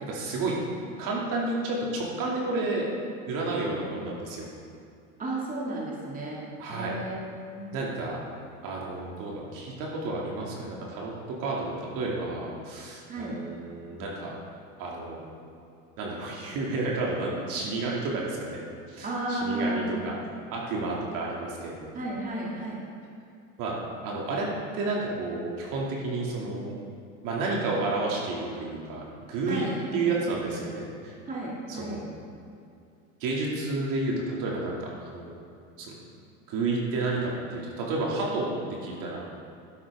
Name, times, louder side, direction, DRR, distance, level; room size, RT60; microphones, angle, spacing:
voice 1, 0.0-0.6 1.0-2.9 3.3-4.5 6.6-6.9 7.7-8.2 8.6-14.3 14.8-15.2 16.0-18.6 18.9-20.1 20.5-21.9 23.6-23.7 24.0-24.5 24.7-26.7 27.2-29.7 29.9-31.1 31.7-32.1 33.2-35.3 35.8-35.9 36.5-38.5 38.8-39.2, right 3 dB, 55° right, -3 dB, 2.6 m, -31 dB
voice 2, 5.2-6.4 6.7-7.7 13.1-13.4 19.0-20.1 21.9-22.8 29.5-30.1 31.3-32.0, right 1 dB, 20° right, -4 dB, 2.4 m, -33 dB
12.0 x 9.2 x 3.6 m, 2.5 s
supercardioid pair, 110°, 39 cm